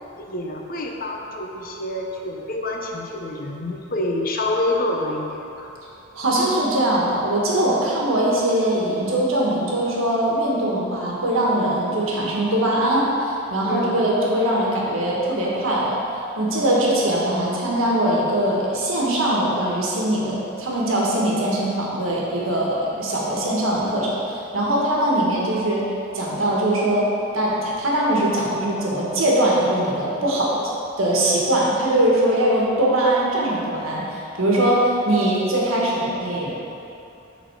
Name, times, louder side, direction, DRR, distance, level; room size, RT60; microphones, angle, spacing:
voice 1, 0.2-5.7 13.6-14.1, left 1 dB, 45° left, 1 dB, 0.7 m, -27 dB
voice 2, 6.1-16.0 16.4-25.9 26.1-30.6 31.0-36.6, right 1 dB, 85° right, -4 dB, 1.3 m, -21 dB
7.1 x 4.1 x 4.5 m, 2.8 s
head